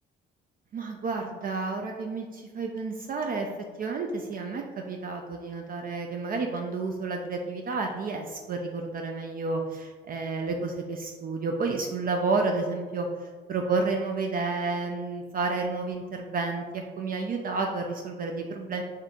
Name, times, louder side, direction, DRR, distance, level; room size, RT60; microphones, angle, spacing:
voice 1, 0.7-3.5 3.8-13.1 13.5-18.8, right 3 dB, 45° right, 2 dB, 0.4 m, -30 dB
4.2 x 2.4 x 3.6 m, 1.4 s
cardioid pair, 90°, 20 cm